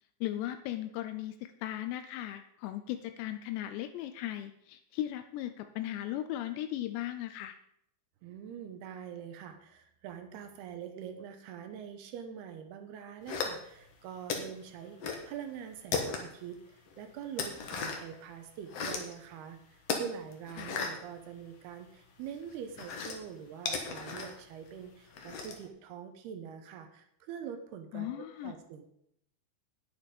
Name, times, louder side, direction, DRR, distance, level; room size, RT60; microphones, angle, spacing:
voice 1, 0.2-7.6 20.6-20.8 27.9-28.5, left 13 dB, 85° left, 9 dB, 2.8 m, -37 dB
voice 2, 8.2-28.9, right 8 dB, 75° right, 6 dB, 2.7 m, -44 dB
sound 1, 13.3-13.9 14.3-15.3 15.6-16.5 16.9-18.1 18.5-19.1 19.8-21.9 22.2-25.7, left 5 dB, 65° left, 1.5 m, -36 dB
9.9 x 9.1 x 5.1 m, 0.74 s
omnidirectional pair, 5.0 m